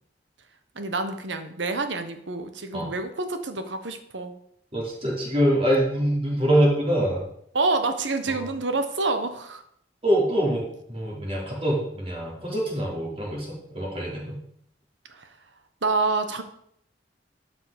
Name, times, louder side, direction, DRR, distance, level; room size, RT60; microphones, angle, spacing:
voice 1, 0.7-4.3 7.5-9.6 15.8-16.4, right 3 dB, 85° right, 8 dB, 1.2 m, -27 dB
voice 2, 4.7-7.2 8.3-8.5 10.0-14.4, equal, 35° right, -4 dB, 3.8 m, -24 dB
12.0 x 5.8 x 5.2 m, 0.70 s
head